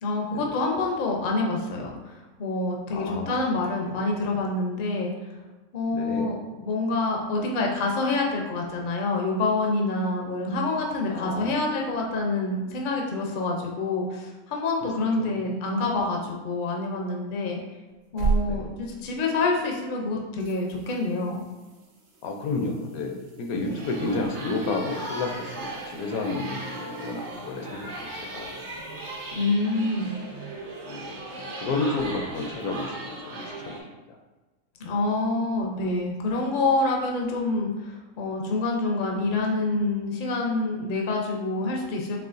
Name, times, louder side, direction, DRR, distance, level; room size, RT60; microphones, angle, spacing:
voice 1, 0.0-5.1 5.7-6.4 6.6-17.6 18.1-21.4 29.3-30.1 34.8-42.3, left 2 dB, 60° left, 0 dB, 0.5 m, -27 dB
voice 2, 2.9-3.4 3.9-4.1 5.9-6.3 11.1-11.6 15.2-15.3 18.4-18.7 22.2-27.9 28.3-28.7 30.9-33.8 34.1-34.2, left 3 dB, 75° left, 3 dB, 1.0 m, -31 dB
sound 1, 17.9-20.0 20.4-30.0 32.8-32.9, right 4 dB, 85° right, 1.3 m, -37 dB
sound 2, 23.6-33.8, right 1 dB, 55° right, 0.5 m, -37 dB
4.6 x 3.0 x 2.5 m, 1.2 s
omnidirectional pair, 1.6 m